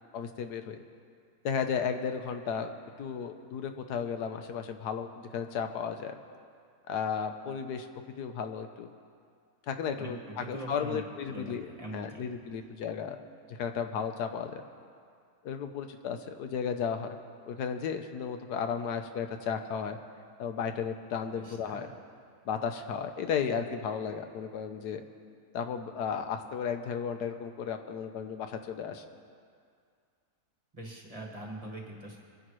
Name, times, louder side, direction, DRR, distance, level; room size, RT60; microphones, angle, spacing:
voice 1, 0.1-0.8 1.4-2.7 3.0-6.1 6.9-7.9 8.2-8.9 9.7-13.2 13.5-14.6 15.4-17.2 17.5-20.0 20.4-21.9 22.5-25.0 25.5-29.0, left 7 dB, 85° left, 7 dB, 1.3 m, -34 dB
voice 2, 9.9-12.2 21.3-21.9 30.7-32.2, right 1 dB, 25° right, -1 dB, 1.5 m, -43 dB
22.5 x 10.0 x 3.1 m, 2.2 s
omnidirectional pair, 1.7 m